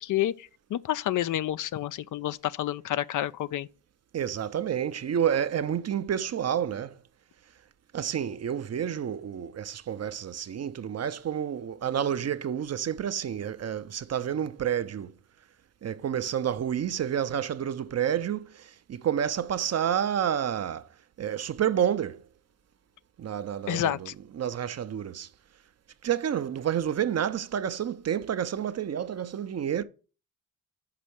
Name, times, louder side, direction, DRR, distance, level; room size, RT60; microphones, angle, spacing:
voice 1, 0.0-3.7 23.7-24.1, left 12 dB, 50° left, 0.5 m, -29 dB
voice 2, 4.1-7.0 7.9-15.1 15.8-20.9 21.2-22.2 23.2-24.1 24.3-25.3 26.0-29.8, right 9 dB, 40° right, 0.7 m, -29 dB
5.8 x 5.0 x 6.4 m
hypercardioid pair, 50°, 39 cm